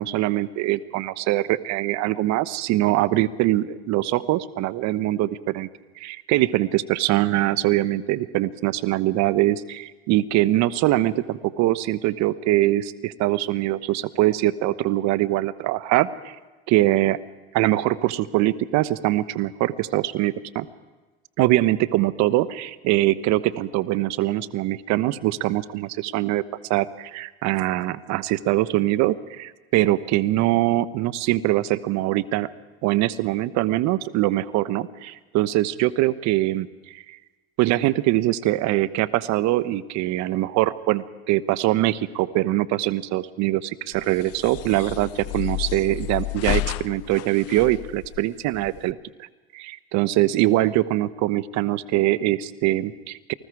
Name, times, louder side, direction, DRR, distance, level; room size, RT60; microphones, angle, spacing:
voice 1, 0.0-5.7 6.0-16.3 16.7-17.2 17.5-20.7 21.4-26.4 26.7-32.5 32.8-37.2 37.6-49.0 49.5-53.3, right 16 dB, 60° right, 15 dB, 1.2 m, -23 dB
sound 1, 43.9-48.9, left 18 dB, 50° left, 0.6 m, -31 dB
28.5 x 20.0 x 4.8 m, 1.3 s
hypercardioid pair, 80°, 31 cm